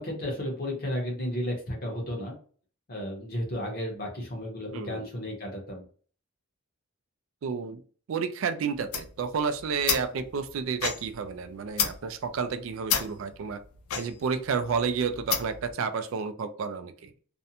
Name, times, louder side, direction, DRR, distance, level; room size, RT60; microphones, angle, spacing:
voice 1, 0.0-2.3 2.9-5.8, left 1 dB, 45° left, 1 dB, 0.8 m, -33 dB
voice 2, 4.7-5.0 7.4-7.8 8.1-13.6 14.0-17.1, right 5 dB, 65° right, 10 dB, 0.3 m, -31 dB
sound 1, 8.7-15.7, left 7 dB, 85° left, 0.4 m, -33 dB
2.5 x 2.1 x 2.7 m, 0.43 s
head